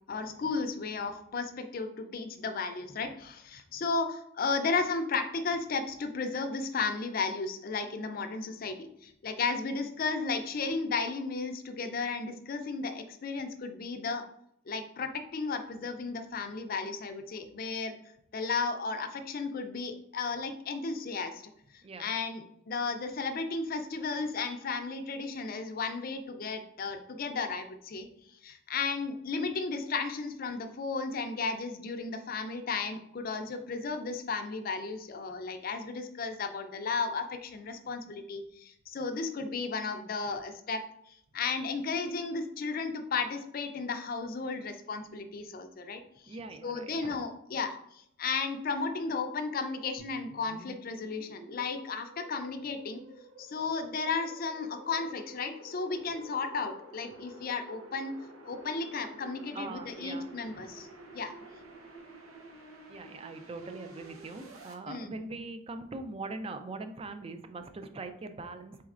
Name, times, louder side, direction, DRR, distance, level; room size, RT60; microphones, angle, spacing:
voice 1, 0.1-14.2 14.7-18.0 18.3-21.4 21.7-28.1 28.4-46.4 46.6-53.0 53.4-58.2 58.4-60.9 61.1-61.3 64.9-65.1, left 4 dB, 45° left, 7 dB, 0.4 m, -34 dB
voice 2, 46.3-47.2 59.5-60.2 62.9-68.9, right 3 dB, 30° right, 8 dB, 0.3 m, -41 dB
sound 1, 50.0-64.7, right 2 dB, 85° right, 0.7 m, -51 dB
4.3 x 3.9 x 2.4 m, 0.72 s
head